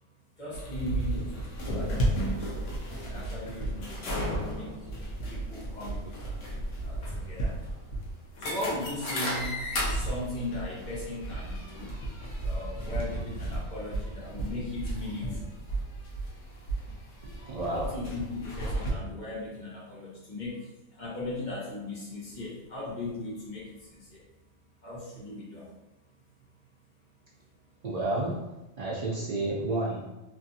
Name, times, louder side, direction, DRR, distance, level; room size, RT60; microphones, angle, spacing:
voice 1, 0.4-2.5 3.0-4.0 4.5-4.9 5.3-6.4 6.8-7.6 8.4-11.9 12.4-15.5 17.7-24.2 24.8-25.7, left 2 dB, 40° left, -7 dB, 1.1 m, -38 dB
sound 1, 0.5-18.9, right 1 dB, 80° left, 1.1 m, -33 dB
voice 2, 17.2-17.9 27.8-28.5 28.8-30.1, right 2 dB, 90° right, -5 dB, 0.3 m, -31 dB
3.2 x 2.4 x 2.6 m, 1.0 s
omnidirectional pair, 1.2 m